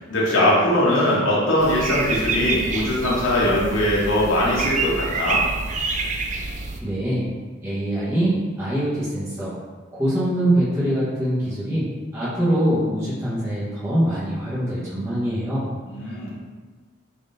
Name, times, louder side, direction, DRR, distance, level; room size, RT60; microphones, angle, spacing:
voice 1, 0.0-5.4 15.9-16.3, left 1 dB, 85° left, -5 dB, 1.1 m, -21 dB
sound 1, 1.6-6.8, right 3 dB, 40° right, 0.4 m, -27 dB
voice 2, 6.8-7.3 7.6-9.5 10.0-11.9 12.1-15.7 16.0-16.3, right 1 dB, 15° right, -11 dB, 1.1 m, -23 dB
4.8 x 3.7 x 2.6 m, 1.4 s
head